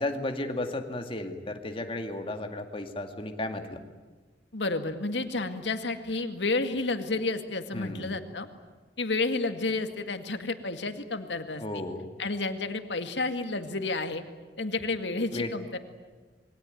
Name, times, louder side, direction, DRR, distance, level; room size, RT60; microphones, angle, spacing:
voice 1, 0.0-3.8 7.7-8.2 11.6-12.1 15.3-15.5, left 1 dB, 30° left, 5 dB, 2.3 m, -34 dB
voice 2, 4.5-8.5 9.0-11.8 12.2-14.2 14.6-15.8, left 3 dB, 85° left, 7 dB, 2.1 m, -31 dB
27.5 x 22.5 x 9.3 m, 1.3 s
head